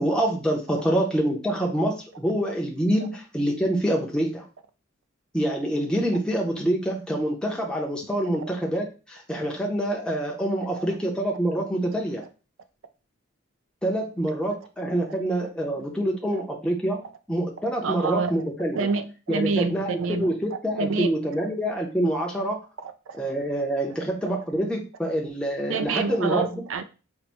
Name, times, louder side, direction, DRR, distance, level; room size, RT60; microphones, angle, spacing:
voice 1, 0.0-4.4 5.3-12.2 13.8-17.0 17.3-18.9 19.3-22.6 23.2-26.6, right 1 dB, 5° left, -1 dB, 0.6 m, -26 dB
voice 2, 17.8-18.4 18.7-20.3 20.8-21.1 22.8-23.2 24.2-24.3 25.7-26.8, right 4 dB, 75° right, 9 dB, 0.4 m, -28 dB
4.4 x 2.1 x 4.2 m, 0.33 s
head